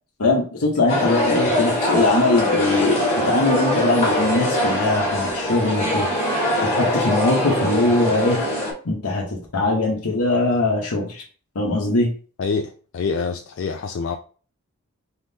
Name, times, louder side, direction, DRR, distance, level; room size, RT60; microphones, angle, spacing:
voice 1, 0.2-6.3 6.6-8.4 8.8-11.2 11.5-12.1, left 2 dB, 90° left, 1.0 m, -21 dB
sound 1, 0.9-8.7, left 1 dB, 30° left, 1.6 m, -22 dB
voice 2, 12.4-14.2, left 5 dB, 55° left, 0.3 m, -26 dB
4.3 x 3.6 x 2.8 m
head